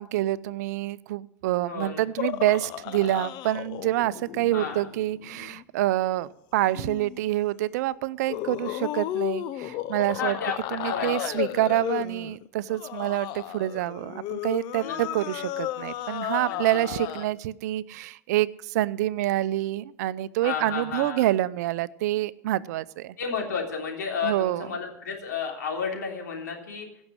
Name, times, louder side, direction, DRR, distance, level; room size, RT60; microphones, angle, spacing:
voice 1, 0.0-10.4 10.7-23.1 24.2-24.7, right 15 dB, 70° right, 17 dB, 0.6 m, -27 dB
voice 2, 1.7-2.0 4.5-4.8 10.1-11.6 14.8-15.0 16.5-16.6 16.9-17.0 20.4-21.3 23.2-26.9, left 6 dB, 85° left, 1 dB, 3.5 m, -32 dB
sound 1, 2.2-5.6 6.7-7.2 8.3-17.3, left 13 dB, 50° left, 0.7 m, -34 dB
16.5 x 6.4 x 9.9 m, 0.79 s
hypercardioid pair, 95°, 9 cm